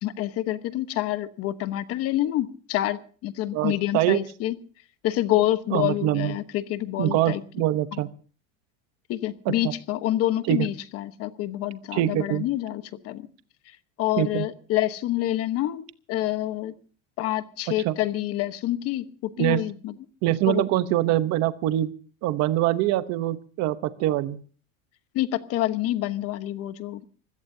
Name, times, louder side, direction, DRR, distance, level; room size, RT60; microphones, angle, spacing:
voice 1, 0.0-4.5 5.0-7.4 7.9-8.0 9.1-13.3 14.0-16.7 17.2-20.0 20.5-20.6 25.1-27.0, left 14 dB, 40° left, 12 dB, 1.1 m, -27 dB
voice 2, 3.5-4.2 5.7-6.3 7.0-8.1 9.5-9.7 10.5-10.7 11.9-12.5 14.2-14.5 17.8-17.9 19.4-19.6 20.2-21.9 22.2-24.4, right 14 dB, 40° right, 12 dB, 1.0 m, -24 dB
25.5 x 17.0 x 2.7 m, 0.40 s
cardioid pair, 165°, 38 cm